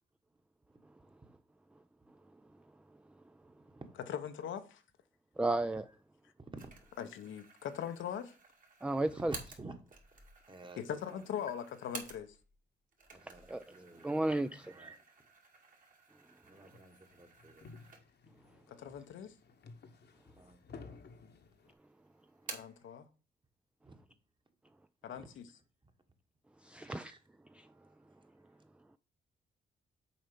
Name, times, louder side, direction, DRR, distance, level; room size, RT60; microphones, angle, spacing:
voice 1, 4.1-4.8 7.0-8.3 10.8-12.4 18.7-19.3 22.5-23.1 25.0-25.5, left 9 dB, 80° left, 0.9 m, -41 dB
voice 2, 5.4-5.9 8.8-9.3 13.5-13.6 14.0-14.7 26.6-27.1 27.5-27.7, right 2 dB, 5° right, 0.4 m, -33 dB
sound 1, 6.6-12.6 12.9-18.4 18.8-18.9 19.7-20.4 20.7-21.5 21.8-22.9, right 3 dB, 45° right, 2.1 m, -52 dB
voice 3, 9.3-9.8 10.5-10.8 11.1-11.2 13.1-14.1 14.6-15.0 16.5-17.7 20.4-21.1 22.4-22.6 23.8-24.0 25.1-25.3 25.8-25.9 26.8-27.2 27.6-27.9, right 2 dB, 25° right, 1.4 m, -53 dB
sound 2, 16.7-21.7, left 4 dB, 60° left, 1.1 m, -55 dB
6.9 x 4.3 x 5.2 m
cardioid pair, 65°, 20 cm